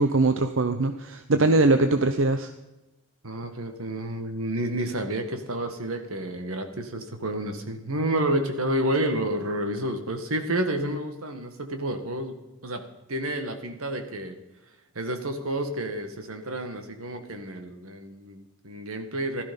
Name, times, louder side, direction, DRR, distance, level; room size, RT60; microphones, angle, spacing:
voice 1, 0.0-2.5, right 2 dB, 65° right, 8 dB, 0.8 m, -21 dB
voice 2, 1.3-1.7 3.2-12.4 12.6-12.8 13.1-14.4 15.0-19.4, right 1 dB, 80° right, 7 dB, 1.9 m, -30 dB
15.5 x 13.0 x 5.4 m, 1.0 s
head